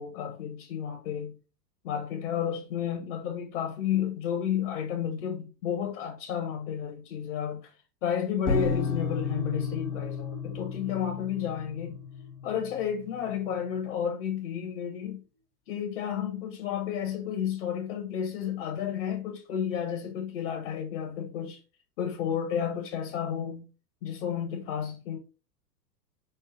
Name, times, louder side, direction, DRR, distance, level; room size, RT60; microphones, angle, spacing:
voice 1, 0.0-1.3 1.8-7.7 8.0-12.0 12.4-15.2 15.7-21.6 22.0-23.7 24.0-25.2, left 8 dB, 45° left, 0.9 m, -32 dB
sound 1, 8.5-13.7, left 5 dB, 65° left, 1.1 m, -33 dB
5.3 x 2.0 x 3.1 m
figure-of-eight pair, 100°, 49 cm